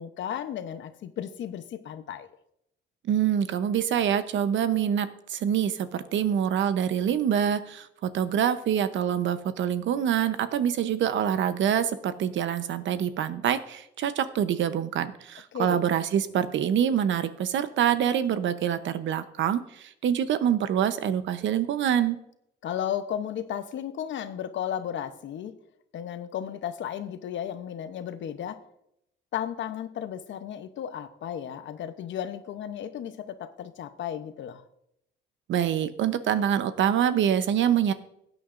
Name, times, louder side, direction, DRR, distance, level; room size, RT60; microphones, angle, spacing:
voice 1, 0.0-2.3 15.5-15.8 22.6-25.6 25.9-28.6 29.3-34.6, left 9 dB, 70° left, 10 dB, 0.8 m, -34 dB
voice 2, 3.1-22.2 35.5-37.9, right 9 dB, 70° right, 12 dB, 0.8 m, -25 dB
16.0 x 9.2 x 2.6 m, 0.77 s
cardioid pair, 90°, 20 cm